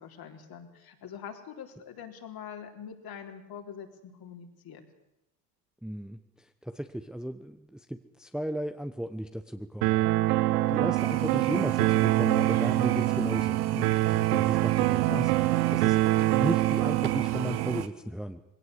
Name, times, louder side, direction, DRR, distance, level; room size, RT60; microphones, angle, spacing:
voice 1, 0.0-4.8, left 8 dB, 45° left, 4 dB, 3.7 m, -44 dB
voice 2, 5.8-6.2 6.6-10.2 10.7-18.4, equal, ahead, 8 dB, 1.0 m, -35 dB
sound 1, 9.8-17.8, right 17 dB, 75° right, 1.0 m, -25 dB
sound 2, 10.9-17.9, right 11 dB, 50° right, 1.6 m, -39 dB
20.5 x 17.5 x 8.1 m, 0.87 s
hypercardioid pair, 80°, 49 cm